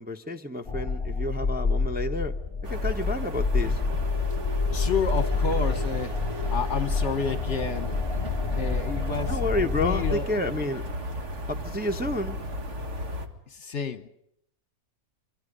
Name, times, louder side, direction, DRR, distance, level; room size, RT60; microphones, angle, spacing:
voice 1, 0.0-2.3 2.7-3.8 9.3-10.8 11.5-12.4, left 1 dB, 5° right, 4 dB, 0.9 m, -30 dB
sound 1, 0.7-10.1, left 4 dB, 25° left, 0.9 m, -28 dB
sound 2, 2.6-13.3, equal, 50° right, 2.3 m, -35 dB
voice 2, 4.7-6.2 6.5-8.0 8.5-10.6 13.5-14.1, left 5 dB, 50° left, 12 dB, 1.3 m, -31 dB
26.0 x 24.5 x 5.3 m, 0.75 s
omnidirectional pair, 1.6 m